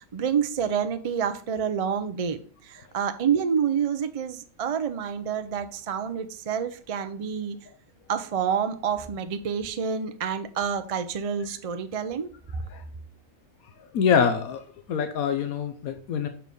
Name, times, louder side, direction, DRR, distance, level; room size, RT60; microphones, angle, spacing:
voice 1, 0.1-2.4 2.7-7.6 8.1-12.3, right 7 dB, 50° right, 0.4 m, -28 dB
voice 2, 13.9-16.3, left 7 dB, 80° left, 1.2 m, -25 dB
6.4 x 4.4 x 5.3 m
omnidirectional pair, 1.5 m